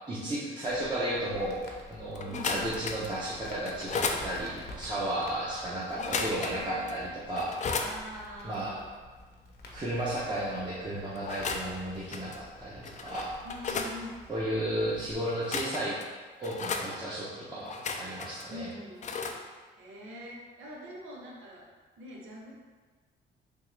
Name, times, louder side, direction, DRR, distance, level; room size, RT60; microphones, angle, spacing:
voice 1, 0.1-7.5 8.4-8.7 9.7-13.3 13.7-13.8 14.3-16.0 16.4-18.7, right 1 dB, 20° right, -9 dB, 0.8 m, -33 dB
Crackle, 0.7-15.1, left 2 dB, 55° left, 0.8 m, -50 dB
sound 1, 2.2-3.2 3.6-4.2 5.9-6.6 6.9-7.0 7.4-7.9 11.2-11.8 12.1-12.4 12.8-13.9 15.3-16.0 16.4-16.9 17.6-18.4 19.0-19.4, left 4 dB, 40° left, 0.4 m, -34 dB
voice 2, 2.2-2.6 5.9-6.9 7.7-8.9 13.4-14.2 18.5-19.2 19.7-21.7 22.0-22.5, left 1 dB, 85° right, -3 dB, 0.8 m, -44 dB
3.5 x 2.9 x 3.2 m, 1.4 s
cardioid pair, 90°, 20 cm